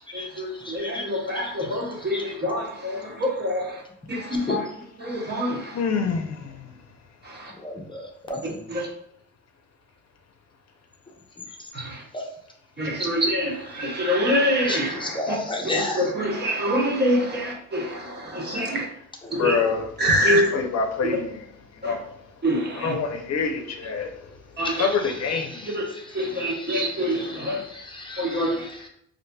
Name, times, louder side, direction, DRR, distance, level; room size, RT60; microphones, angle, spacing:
voice 1, 0.4-3.6 4.1-4.6 5.1-5.5 8.7-8.8 12.8-13.5 13.8-14.9 15.3-15.4 15.7-17.8 18.3-18.8 19.4-19.6 20.0-20.4 21.8-21.9 22.4-22.9 24.6-24.7 25.7-25.8 26.1-27.2 27.4-27.6 28.2-28.5, equal, 35° right, -1 dB, 0.9 m, -24 dB
voice 2, 5.7-6.3 19.4-19.9 20.2-21.3 21.9-22.0 22.8-24.1 24.8-25.5, left 5 dB, 60° left, 4 dB, 0.6 m, -25 dB
voice 3, 7.6-8.0 8.3-8.4 14.7-16.0 24.6-25.7 26.6-27.4 27.9-28.5, left 2 dB, 15° left, 1 dB, 0.7 m, -32 dB
4.1 x 2.7 x 2.2 m, 0.72 s
cardioid pair, 90°, 30 cm